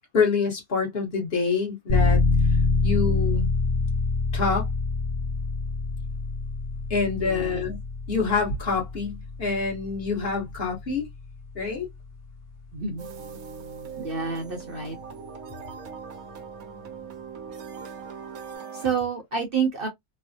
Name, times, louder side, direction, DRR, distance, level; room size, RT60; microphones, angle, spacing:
voice 1, 0.1-2.2 2.8-3.5 4.3-4.7 6.9-7.8 8.1-11.1 11.5-11.9, left 5 dB, 50° left, 1.2 m, -26 dB
sound 1, 1.9-12.4, left 3 dB, 80° left, 1.2 m, -26 dB
voice 2, 7.1-7.6 12.7-13.1 14.0-15.0 18.7-19.9, right 5 dB, 50° right, 0.8 m, -29 dB
sound 2, 13.0-19.0, right 6 dB, 80° right, 1.2 m, -40 dB
3.1 x 2.0 x 2.6 m
omnidirectional pair, 1.4 m